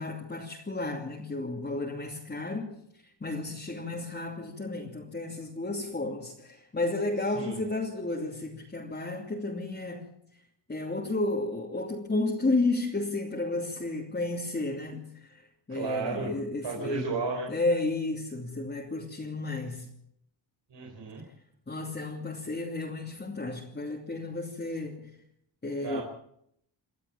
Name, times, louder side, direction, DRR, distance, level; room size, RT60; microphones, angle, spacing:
voice 1, 0.0-2.8 3.2-10.1 10.7-17.1 17.5-19.9 21.7-25.1 25.6-26.0, left 2 dB, 25° left, 2.8 m, -32 dB
voice 2, 7.2-7.6 15.7-16.3 16.6-17.5 20.7-21.2 25.8-26.0, right 4 dB, 70° right, 4.5 m, -34 dB
28.5 x 12.5 x 7.3 m
wide cardioid pair, 140°, 44 cm